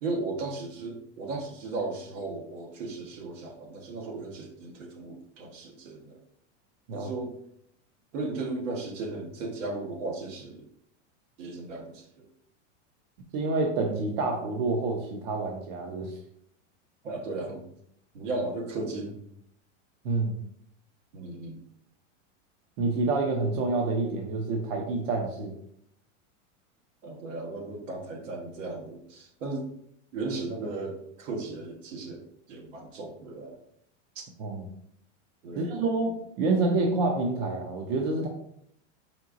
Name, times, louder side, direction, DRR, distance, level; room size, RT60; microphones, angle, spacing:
voice 1, 0.0-6.2 6.9-7.3 8.1-10.7 11.4-12.3 17.0-17.6 18.1-19.2 21.1-21.6 27.0-29.7 30.1-33.6 34.1-34.2 35.4-35.9, right 3 dB, 80° right, 1 dB, 1.3 m, -36 dB
voice 2, 13.3-16.1 20.0-20.3 22.8-25.6 34.4-34.7 35.6-38.3, right 3 dB, 50° right, 2 dB, 0.8 m, -28 dB
4.7 x 4.4 x 2.6 m, 0.69 s
supercardioid pair, 150°, 37 cm